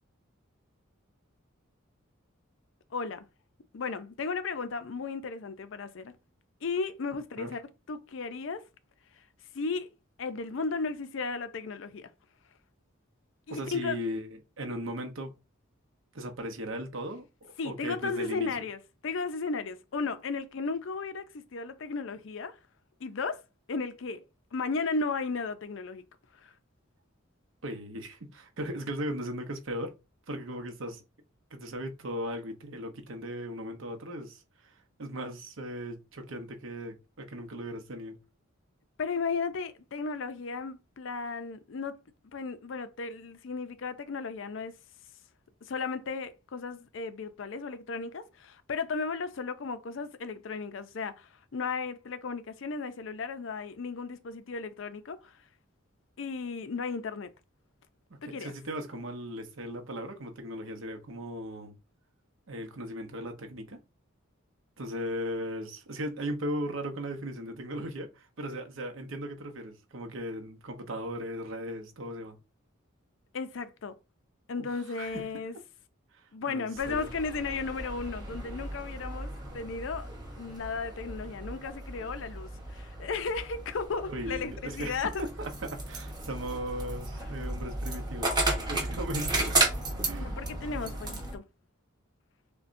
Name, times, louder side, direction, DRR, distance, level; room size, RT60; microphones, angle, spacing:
voice 1, 2.9-3.3 3.7-6.1 6.6-7.6 7.9-8.6 9.5-9.9 10.2-12.1 13.5-14.0 17.6-22.6 23.0-23.4 23.7-24.2 24.5-26.0 26.4-26.5 39.0-42.0 42.3-44.7 45.6-55.4 56.2-57.3 58.2-58.5 73.3-73.9 74.5-75.6 76.3-80.1 80.4-85.2 90.2-91.4, left 4 dB, 65° left, 0.5 m, -35 dB
voice 2, 13.5-15.3 16.1-18.5 27.6-29.9 30.3-31.0 31.5-38.2 58.1-61.7 62.5-63.8 64.8-72.4 74.6-75.3 76.1-77.1 84.1-89.6 90.0-90.4, equal, 70° right, 0.8 m, -37 dB
sound 1, 76.7-91.4, right 2 dB, 20° right, 1.0 m, -34 dB
6.6 x 2.2 x 2.6 m
head